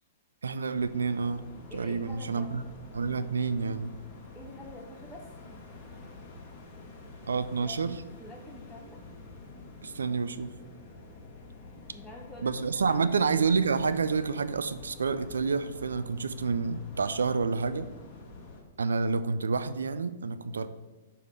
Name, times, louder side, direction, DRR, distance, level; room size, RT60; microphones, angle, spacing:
voice 1, 0.4-1.5 1.7-2.6 2.9-3.9 7.3-8.0 9.8-10.5 12.4-17.9 18.8-20.7, right 5 dB, 70° right, 12 dB, 0.4 m, -29 dB
sound 1, 0.7-18.6, left 3 dB, 35° left, 1.2 m, -48 dB
voice 2, 1.7-2.5 4.3-5.3 7.6-7.9 8.2-9.0 11.9-13.1, left 1 dB, ahead, -5 dB, 0.7 m, -46 dB
6.3 x 3.6 x 5.5 m, 1.2 s
figure-of-eight pair, 110°, 0 cm